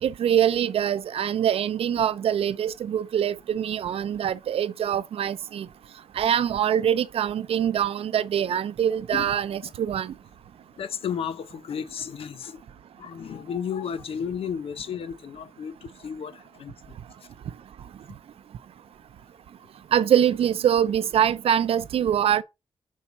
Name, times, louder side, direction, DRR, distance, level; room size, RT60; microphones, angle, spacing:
voice 1, 0.0-5.7 6.1-10.1 19.9-22.4, right 9 dB, 80° right, 0.5 m, -24 dB
voice 2, 10.8-12.6 13.0-17.0, left 7 dB, 75° left, 0.8 m, -33 dB
5.5 x 4.1 x 6.0 m
wide cardioid pair, 155°, 10 cm